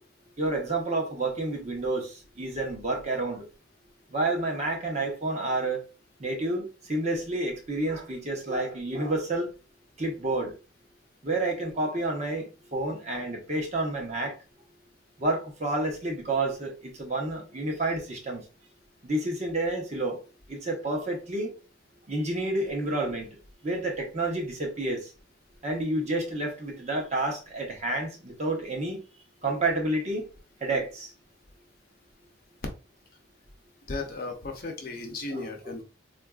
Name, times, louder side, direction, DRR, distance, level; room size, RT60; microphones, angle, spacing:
voice 1, 0.4-3.5 4.1-5.8 6.2-9.5 10.0-10.5 11.2-14.4 15.2-18.4 19.0-20.2 20.5-21.5 22.1-23.3 23.6-25.1 25.6-29.0 29.4-30.3 30.6-31.1 35.3-35.7, right 2 dB, 35° right, 0.8 m, -29 dB
voice 2, 33.9-35.8, left 3 dB, 45° left, 0.6 m, -35 dB
3.9 x 2.4 x 2.3 m
head